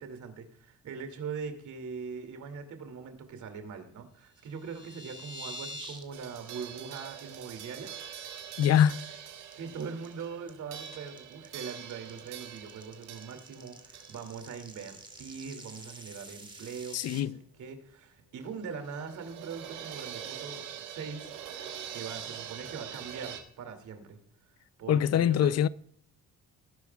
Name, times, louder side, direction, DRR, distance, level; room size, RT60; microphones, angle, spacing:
voice 1, 0.0-7.9 9.5-21.4 21.9-24.2 24.8-25.5, right 6 dB, 75° right, 2.6 m, -42 dB
sound 1, 4.4-6.0 6.4-6.6 7.0-7.1 7.4-7.7 8.0-8.5 8.9-17.2, right 1 dB, 15° right, 2.8 m, -47 dB
sound 2, 6.1-16.0 16.3-16.4 18.5-23.4, right 9 dB, 90° right, 1.6 m, -44 dB
voice 2, 8.6-9.1 16.9-17.4 24.9-25.7, left 9 dB, 55° left, 0.5 m, -24 dB
19.0 x 10.5 x 2.3 m
cardioid pair, 90°, 30 cm